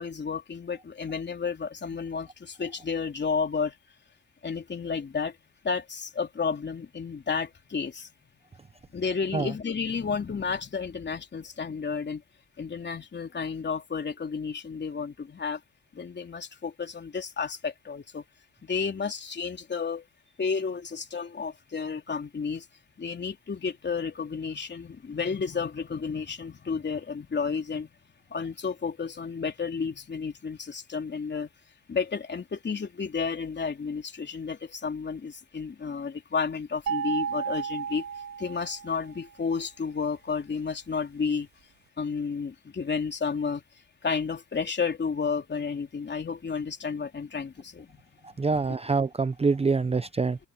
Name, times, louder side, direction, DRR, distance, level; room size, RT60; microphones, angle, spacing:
voice 1, 0.0-3.7 4.4-5.4 5.6-8.1 8.9-12.2 12.6-15.6 15.9-18.2 18.6-20.0 20.4-22.7 23.0-27.9 28.3-31.5 31.9-38.0 38.4-41.5 42.0-43.6 44.0-48.7, left 5 dB, 35° left, 3.3 m, -32 dB
sound 1, 36.9-39.1, right 7 dB, 65° right, 2.1 m, -32 dB
voice 2, 48.4-50.4, right 4 dB, 20° right, 0.7 m, -25 dB
cardioid pair, 90°, 30 cm